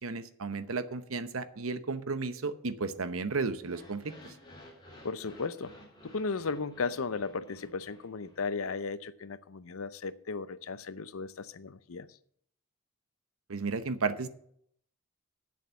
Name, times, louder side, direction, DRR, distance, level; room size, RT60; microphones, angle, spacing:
voice 1, 0.0-4.3 13.5-14.3, right 4 dB, 75° right, 0.9 m, -33 dB
sound 1, 3.6-8.7, left 1 dB, 20° left, 3.2 m, -54 dB
voice 2, 5.0-5.7 6.0-12.1, left 4 dB, 80° left, 0.6 m, -35 dB
8.4 x 7.2 x 8.1 m
head